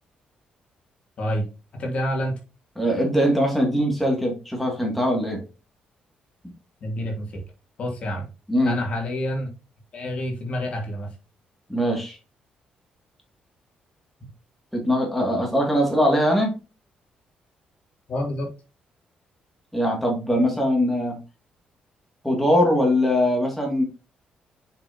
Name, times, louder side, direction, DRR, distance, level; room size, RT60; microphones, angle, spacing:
voice 1, 1.8-2.4 6.8-7.4 7.8-8.3 8.6-9.5 9.9-11.1 18.1-18.5, equal, 45° left, 1 dB, 2.8 m, -28 dB
voice 2, 2.8-5.4 8.5-8.8 11.7-12.2 14.7-16.5 19.7-21.2 22.2-23.8, equal, 5° left, 0 dB, 2.4 m, -21 dB
7.2 x 6.1 x 2.9 m, 0.30 s
cardioid pair, 130°, 3 cm